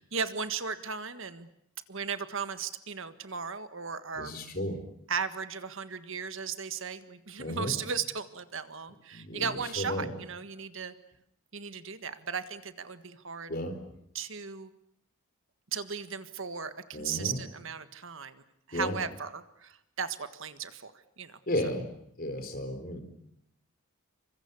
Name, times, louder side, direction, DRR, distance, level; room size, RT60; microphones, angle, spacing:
voice 1, 0.0-1.5 1.9-4.3 5.1-10.9 11.5-13.5 14.1-14.7 15.7-18.3 18.7-20.9 21.2-21.4, right 6 dB, 60° right, 11 dB, 1.6 m, -36 dB
voice 2, 4.2-4.8 7.4-7.7 9.1-10.1 13.5-13.8 16.9-17.4 18.7-19.0 21.5-21.8 22.2-23.0, left 1 dB, 40° left, 7 dB, 4.3 m, -33 dB
29.0 x 25.0 x 7.1 m, 0.73 s
head